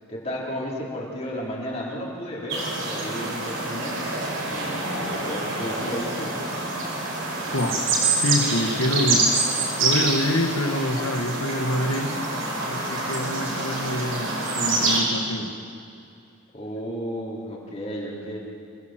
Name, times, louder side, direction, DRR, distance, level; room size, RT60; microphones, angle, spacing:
voice 1, 0.1-4.1 4.5-6.4 16.5-18.4, equal, 30° left, -4 dB, 4.1 m, -33 dB
sound 1, 2.5-15.0, right 3 dB, 70° right, 5.8 m, -26 dB
voice 2, 7.5-9.3 9.8-12.1 12.7-15.5, left 1 dB, 90° left, 5 dB, 2.0 m, -26 dB
27.5 x 16.5 x 7.9 m, 2.4 s
head